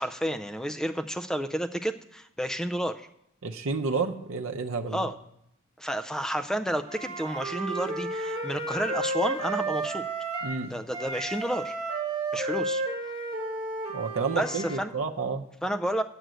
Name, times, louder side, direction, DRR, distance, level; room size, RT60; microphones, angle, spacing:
voice 1, 0.0-3.1 4.9-5.1 5.8-10.0 10.7-11.7 12.3-12.8 14.4-14.9 15.6-16.0, equal, 5° left, 8 dB, 0.3 m, -31 dB
voice 2, 3.4-5.1 10.4-10.7 13.9-15.4, right 4 dB, 75° right, 4 dB, 0.7 m, -30 dB
Wind instrument woodwind instrument, 6.8-10.6 10.9-14.8, right 2 dB, 25° right, 1.9 m, -32 dB
7.8 x 7.8 x 6.2 m, 0.76 s
head